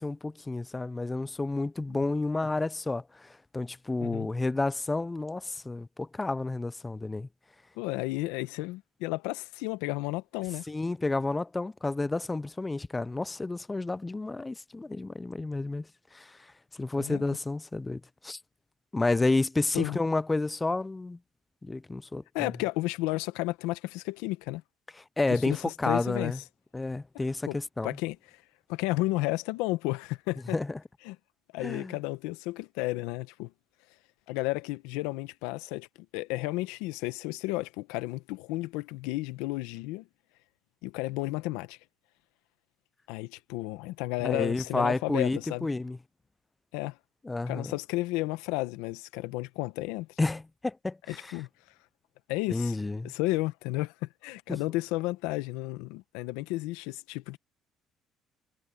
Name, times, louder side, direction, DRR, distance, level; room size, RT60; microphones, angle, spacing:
voice 1, 0.0-7.3 10.7-16.4 16.7-18.4 18.9-21.2 21.6-22.5 25.2-26.4 26.7-28.0 30.5-30.8 31.6-32.0 44.2-46.0 47.2-47.7 50.2-51.4 52.5-53.1 54.5-54.6, left 2 dB, 20° left, 0.4 m, -30 dB
voice 2, 7.8-10.6 17.0-17.2 19.7-20.0 22.3-24.6 25.3-26.3 27.5-27.6 27.8-28.4 28.7-30.6 31.0-31.2 31.5-33.5 34.3-35.9 36.1-40.1 40.8-41.8 43.1-45.7 46.7-47.0 47.5-50.1 51.1-51.5 52.3-52.7 53.0-57.4, left 19 dB, 90° left, 1.1 m, -32 dB
supercardioid pair, 80°, 0 cm